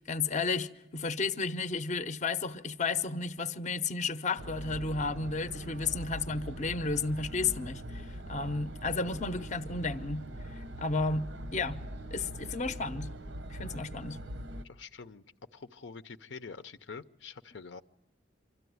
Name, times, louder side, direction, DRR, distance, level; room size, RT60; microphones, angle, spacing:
voice 1, 0.0-11.8 12.1-13.1 13.5-14.2, left 4 dB, 40° left, 0.7 m, -33 dB
sound 1, 4.4-14.6, equal, 90° right, 1.0 m, -42 dB
voice 2, 14.6-15.3 15.5-17.8, left 5 dB, 80° left, 0.7 m, -46 dB
25.5 x 13.5 x 9.4 m
head